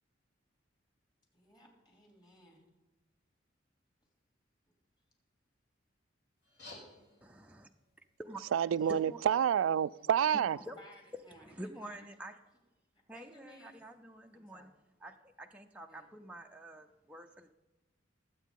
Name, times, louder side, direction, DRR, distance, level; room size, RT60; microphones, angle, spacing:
voice 1, 1.3-2.6 8.8-8.9 10.2-12.1 13.1-13.8 14.3-14.7 15.9-16.1, left 1 dB, 25° left, 2.9 m, -58 dB
sound 1, 6.4-11.4, left 2 dB, 60° left, 3.5 m, -59 dB
voice 2, 7.2-7.7 8.2-9.2 10.7-10.8 11.4-12.3 13.1-14.7 15.0-17.5, right 1 dB, 5° right, 0.5 m, -48 dB
voice 3, 8.5-10.6, right 8 dB, 90° right, 0.3 m, -28 dB
21.0 x 8.1 x 3.7 m
head